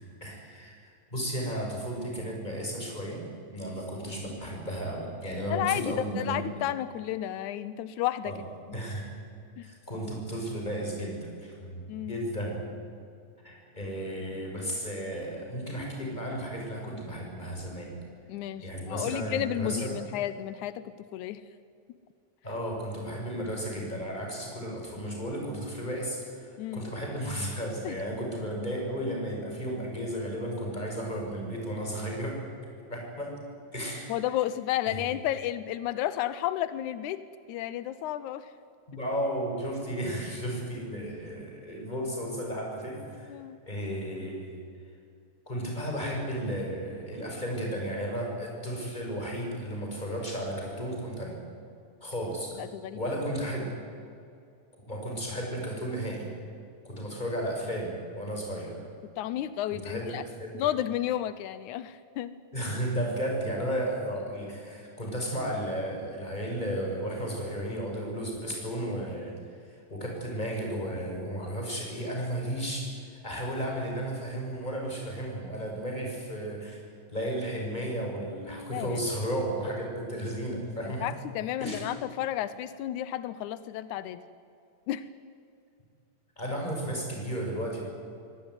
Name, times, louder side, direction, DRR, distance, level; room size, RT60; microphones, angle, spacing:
voice 1, 0.2-6.4 8.2-8.4 8.7-9.0 9.6-12.6 13.4-17.9 18.6-19.9 22.4-32.4 32.9-33.3 33.7-34.2 34.8-35.0 38.9-43.4 43.6-44.6 45.5-51.4 52.0-52.6 52.9-53.7 54.9-56.3 56.8-58.9 59.7-60.7 62.5-69.3 69.6-76.8 77.1-81.1 81.6-81.8 86.4-87.8, right 1 dB, 15° left, 0 dB, 6.1 m, -34 dB
voice 2, 5.5-8.3 9.6-9.7 11.9-12.2 18.3-21.4 26.6-26.9 27.8-27.9 34.1-38.5 43.3-43.6 52.6-53.2 59.2-60.2 60.5-62.4 78.7-79.0 80.9-84.2 84.9-85.0, left 12 dB, 85° left, 14 dB, 2.2 m, -32 dB
23.5 x 17.5 x 9.7 m, 2.4 s
omnidirectional pair, 3.4 m